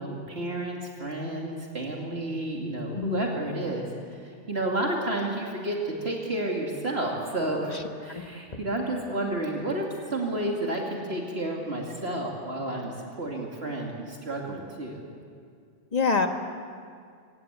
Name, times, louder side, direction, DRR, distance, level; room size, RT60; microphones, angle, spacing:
voice 1, 0.0-3.9 4.1-15.0, right 1 dB, 60° right, -1 dB, 2.7 m, -31 dB
voice 2, 2.9-3.4 15.9-16.3, left 4 dB, 35° left, 5 dB, 1.6 m, -25 dB
25.0 x 17.5 x 8.1 m, 2.2 s
omnidirectional pair, 1.2 m